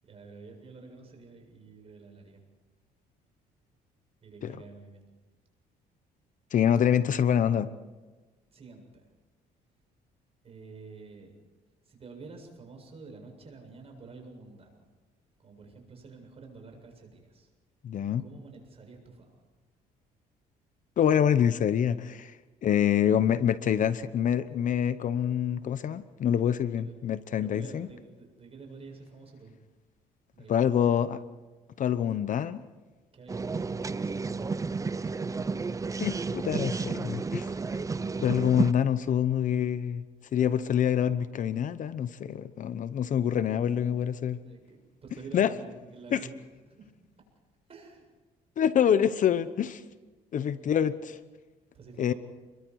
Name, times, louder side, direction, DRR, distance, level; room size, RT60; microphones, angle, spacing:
voice 1, 0.0-2.4 4.2-5.1 8.5-9.1 10.4-11.4 11.8-14.8 15.4-17.5 18.2-19.4 26.7-27.0 27.4-29.6 30.3-31.0 33.1-34.4 43.6-43.9 44.4-46.9 47.7-48.1 50.6-50.9 51.7-52.2, right 4 dB, 35° right, 3 dB, 7.5 m, -49 dB
voice 2, 6.5-7.7 17.8-18.2 21.0-22.4 22.6-27.9 30.5-31.2 31.8-32.6 36.0-37.5 38.2-40.0 40.3-44.4 45.3-45.5 46.1-46.2 48.6-49.8 50.3-51.2 52.0-52.1, left 9 dB, 50° left, 14 dB, 0.9 m, -26 dB
sound 1, 33.3-38.7, right 4 dB, 20° right, 0.7 m, -32 dB
29.5 x 22.5 x 4.8 m, 1.2 s
cardioid pair, 110°, 17 cm